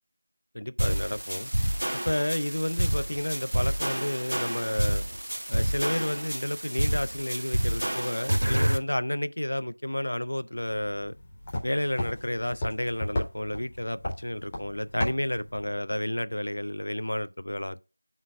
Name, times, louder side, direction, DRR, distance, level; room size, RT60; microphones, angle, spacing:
voice 1, 0.5-1.5 1.9-5.1 5.5-11.1 11.6-17.8, left 1 dB, 80° left, 0.4 m, -31 dB
sound 1, 0.8-8.8, right 1 dB, 70° right, 0.5 m, -28 dB
sound 2, 10.6-15.8, left 1 dB, 10° left, 0.4 m, -36 dB
11.0 x 3.8 x 2.3 m
figure-of-eight pair, 180°, 0 cm